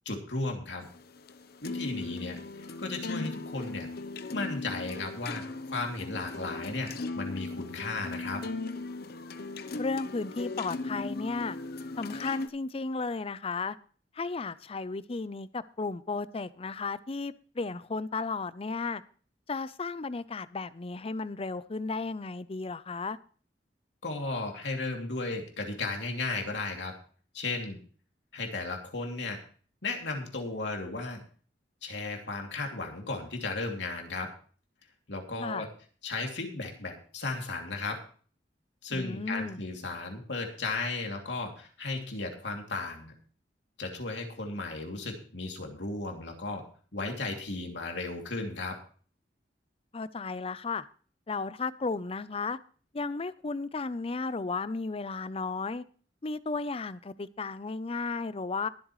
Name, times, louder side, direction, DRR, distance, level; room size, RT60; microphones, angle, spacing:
voice 1, 0.0-0.9 1.6-3.9 4.3-5.4 5.7-8.4 24.0-26.9 27.3-27.8 28.3-29.4 29.8-31.2 31.8-34.3 35.1-35.7 36.0-38.0 38.8-43.1 43.8-46.6 46.9-48.8, left 3 dB, 85° left, 2.7 m, -35 dB
sound 1, 0.8-12.5, left 3 dB, 60° left, 0.8 m, -38 dB
voice 2, 9.8-11.6 12.0-13.8 14.1-19.0 19.5-23.2 35.4-35.7 38.9-39.6 49.9-50.9 51.3-52.6 52.9-55.8 56.2-58.7, left 4 dB, 35° left, 0.6 m, -34 dB
21.5 x 7.8 x 3.2 m
head